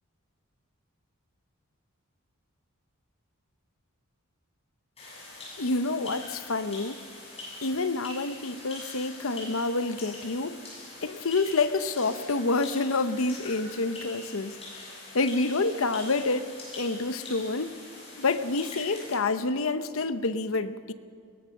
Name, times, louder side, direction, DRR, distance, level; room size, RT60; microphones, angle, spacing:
sound 1, 5.0-19.2, left 2 dB, 25° left, 7.4 m, -44 dB
voice 1, 5.6-7.1 7.6-10.6 11.0-14.6 15.1-17.8 18.2-20.9, left 3 dB, 65° left, 12 dB, 0.8 m, -28 dB
22.5 x 19.0 x 6.5 m, 2.3 s
head